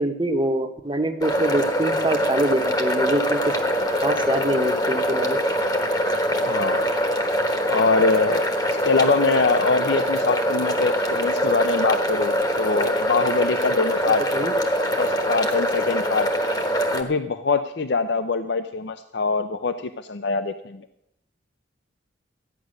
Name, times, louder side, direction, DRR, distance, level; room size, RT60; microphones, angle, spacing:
voice 1, 0.0-3.6 4.0-5.4 14.1-14.5, right 1 dB, 25° right, 7 dB, 1.0 m, -25 dB
sound 1, 1.2-17.0, equal, 20° left, 1.2 m, -23 dB
voice 2, 6.5-6.9 7.7-8.5 8.8-14.2 14.7-16.3 16.9-20.8, left 4 dB, 65° left, 10 dB, 0.6 m, -23 dB
14.0 x 9.5 x 6.5 m, 0.79 s
head